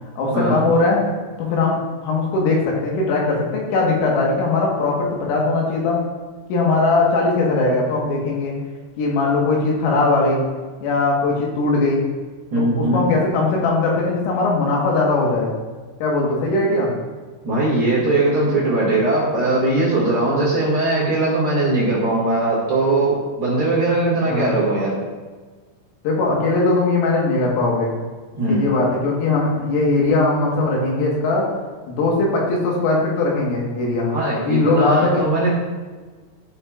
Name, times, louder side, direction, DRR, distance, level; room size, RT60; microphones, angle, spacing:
voice 1, 0.2-1.0 1.4-6.0 6.5-8.6 9.0-10.4 10.8-12.1 12.6-15.5 16.0-16.9 24.3-24.5 26.1-27.9 28.5-31.5 31.9-34.1 34.5-35.3, left 3 dB, 80° left, -2 dB, 4.0 m, -20 dB
voice 2, 12.5-13.0 17.4-25.0 28.4-28.6 34.1-35.5, right 2 dB, 80° right, -8 dB, 1.2 m, -20 dB
14.0 x 5.7 x 2.4 m, 1.4 s
omnidirectional pair, 5.8 m